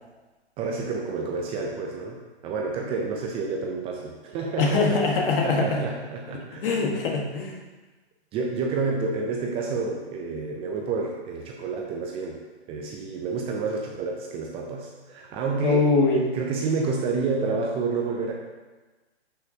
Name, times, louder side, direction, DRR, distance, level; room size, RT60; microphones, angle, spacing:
voice 1, 0.6-4.8 5.1-6.6 8.3-12.4 12.7-15.9 16.3-18.3, right 4 dB, 15° right, 0 dB, 0.5 m, -29 dB
voice 2, 4.6-5.9 6.6-7.6 15.6-16.2, left 3 dB, 55° left, 0 dB, 1.7 m, -22 dB
10.5 x 5.7 x 2.8 m, 1.2 s
hypercardioid pair, 130°, 34 cm